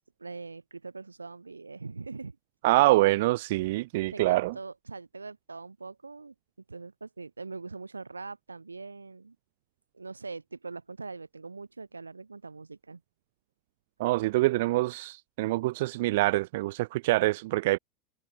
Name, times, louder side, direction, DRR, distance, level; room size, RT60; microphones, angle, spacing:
voice 1, 0.2-2.4 4.1-6.3 6.7-9.4 9.9-13.0, right 4 dB, 80° right, 7.2 m, -42 dB
voice 2, 2.6-4.5 14.0-17.8, right 19 dB, 55° right, 2.5 m, -25 dB
figure-of-eight pair, 85°, 0 cm